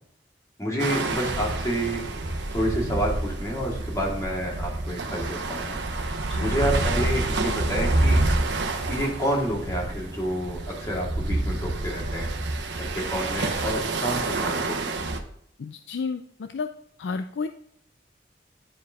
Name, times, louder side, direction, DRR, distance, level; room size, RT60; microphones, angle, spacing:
voice 1, 0.6-2.0 2.5-5.8 6.4-8.2 8.9-15.0, equal, 20° left, -3 dB, 2.1 m, -29 dB
sound 1, 0.8-15.2, right 2 dB, 80° right, 0.9 m, -28 dB
voice 2, 15.6-16.7 17.0-17.5, left 4 dB, 80° left, 9 dB, 0.4 m, -31 dB
10.5 x 4.7 x 3.6 m, 0.66 s
head